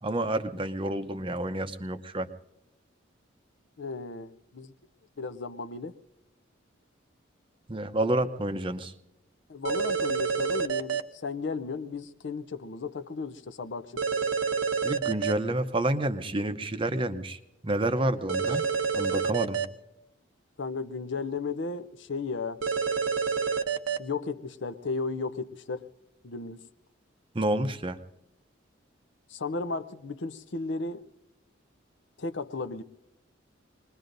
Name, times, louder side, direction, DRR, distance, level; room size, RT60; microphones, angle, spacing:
voice 1, 0.0-2.3 7.7-8.9 14.8-18.6 18.9-19.6 27.3-28.0, right 1 dB, 25° right, 9 dB, 0.7 m, -29 dB
voice 2, 3.8-4.7 5.2-5.9 9.5-14.0 20.6-22.6 24.0-25.9 26.2-26.6 29.3-31.0 32.2-32.8, left 4 dB, 60° left, 11 dB, 0.6 m, -34 dB
sound 1, 9.6-11.0 14.0-15.3 18.3-19.6 22.6-24.0, right 5 dB, 85° right, 0.8 m, -28 dB
25.5 x 21.0 x 2.6 m, 0.89 s
head